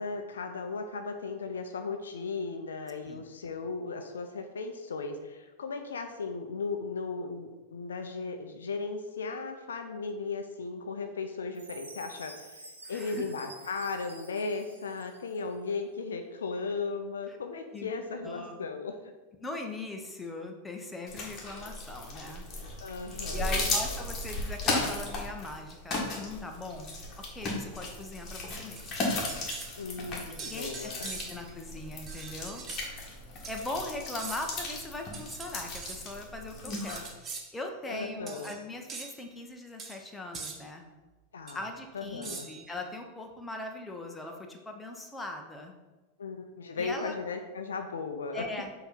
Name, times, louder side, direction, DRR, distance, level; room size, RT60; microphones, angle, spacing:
voice 1, 0.0-19.0 22.8-23.7 29.8-31.2 37.9-38.5 41.3-41.6 41.9-42.5 46.2-48.4, left 4 dB, 65° left, 6 dB, 0.5 m, -36 dB
Chime, 11.5-15.5, right 2 dB, 75° right, 0.9 m, -50 dB
voice 2, 12.8-13.3 17.3-17.4 17.7-17.9 18.2-18.6 19.4-22.5 23.3-27.0 27.3-28.8 30.3-32.7 33.5-40.8 41.5-45.7 46.8-47.1 48.3-48.7, left 2 dB, 10° left, 2 dB, 0.9 m, -40 dB
sound 1, 21.1-37.1, left 2 dB, 30° left, 1.5 m, -36 dB
sound 2, 28.8-29.8 30.4-31.5 32.1-32.8 33.4-33.7 34.2-34.6 35.1-36.0 36.7-37.5 38.3-38.6 38.9-39.1 39.8-40.0 40.3-40.6 41.5-41.6 42.2-42.7, right 5 dB, 25° right, 0.8 m, -42 dB
6.8 x 2.9 x 5.1 m, 1.2 s
figure-of-eight pair, 90°, 0 cm